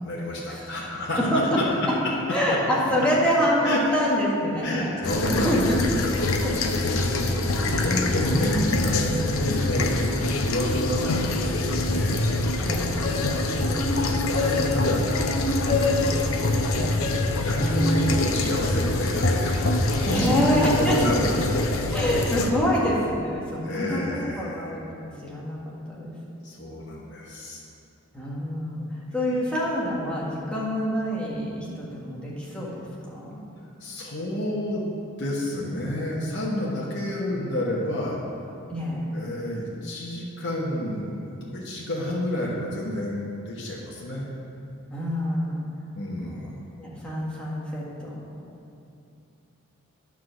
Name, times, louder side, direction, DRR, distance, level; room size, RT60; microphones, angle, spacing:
voice 1, 0.0-1.9 3.6-3.8 4.6-6.5 6.9-12.2 13.0-14.0 14.4-16.3 17.4-21.7 23.6-24.8 26.4-27.6 29.2-29.5 33.8-34.9 35.2-38.2 39.1-44.3 45.9-46.5, left 1 dB, 55° left, -5 dB, 1.1 m, -30 dB
voice 2, 1.2-1.9 2.3-4.9 5.4-5.6 6.4-6.7 7.6-8.9 12.6-13.0 20.1-21.2 21.9-26.1 28.1-28.8 29.1-33.4 38.7-39.1 44.9-45.6 46.2-46.5 46.8-48.4, equal, 5° left, -6 dB, 1.5 m, -26 dB
sound 1, 5.0-22.5, left 2 dB, 75° left, 0.7 m, -25 dB
sound 2, 13.0-18.9, left 3 dB, 30° left, 0.6 m, -29 dB
9.4 x 4.7 x 6.3 m, 2.6 s
head